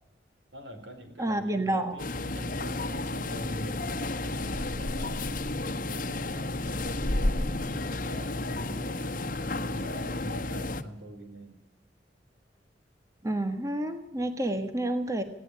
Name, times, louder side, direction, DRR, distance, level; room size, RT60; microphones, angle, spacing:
voice 1, 0.5-3.9 4.2-5.3 5.8-11.6 14.1-14.3, equal, 70° right, 7 dB, 4.4 m, -44 dB
voice 2, 1.2-1.9 13.2-15.2, right 1 dB, 15° right, 6 dB, 1.4 m, -29 dB
sound 1, 2.0-10.8, left 2 dB, 50° left, 1.3 m, -32 dB
18.5 x 17.0 x 9.8 m, 0.87 s
head